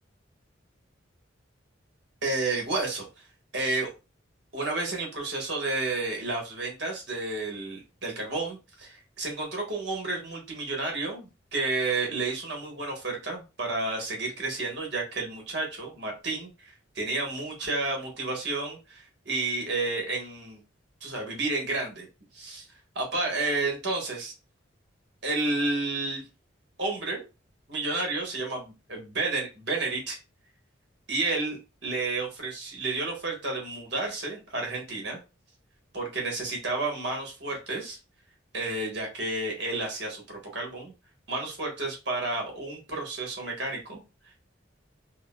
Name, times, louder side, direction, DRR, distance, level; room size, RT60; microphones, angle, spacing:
voice 1, 2.2-3.1 3.5-3.9 4.5-16.5 16.9-20.6 21.0-22.1 22.3-22.7 22.9-24.3 25.2-26.2 26.8-27.2 27.7-30.2 31.1-35.2 35.9-38.0 38.5-40.9 41.3-44.0, right 3 dB, 65° right, 1 dB, 1.2 m, -31 dB
3.6 x 2.0 x 2.2 m, 0.28 s
head